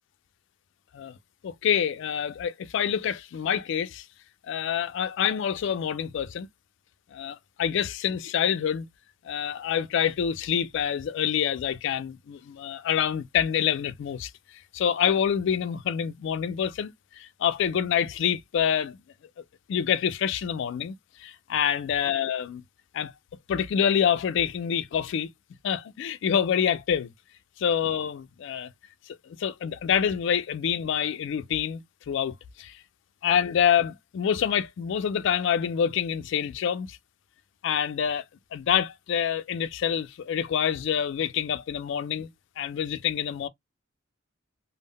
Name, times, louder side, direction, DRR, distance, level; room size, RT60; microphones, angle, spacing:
voice 1, 1.4-4.0 4.5-6.5 7.1-8.9 9.2-14.3 14.7-16.9 17.2-19.0 19.7-22.6 22.9-23.1 23.5-25.3 25.6-27.1 27.6-28.7 29.1-32.8 33.2-37.0 37.6-38.2 38.5-42.3 42.6-43.5, left 8 dB, 65° left, 0.3 m, -27 dB
2.0 x 2.0 x 3.5 m
head